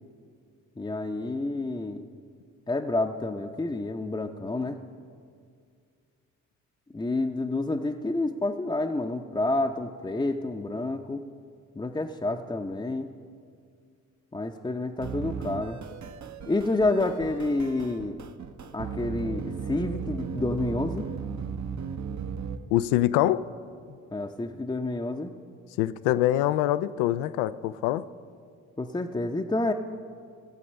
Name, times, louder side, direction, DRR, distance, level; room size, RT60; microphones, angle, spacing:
voice 1, 0.8-2.0 2.7-4.8 6.9-11.2 11.7-13.1 14.3-15.8 16.5-18.2 18.7-21.1 21.4-21.5 24.1-25.3 28.8-29.7, left 2 dB, 10° left, 3 dB, 0.7 m, -29 dB
sound 1, 15.0-22.6, right 6 dB, 45° right, 0.9 m, -36 dB
voice 2, 22.7-23.5 25.8-28.1, left 14 dB, 75° left, 15 dB, 0.5 m, -24 dB
17.0 x 7.6 x 5.5 m, 2.2 s
hypercardioid pair, 45°, 39 cm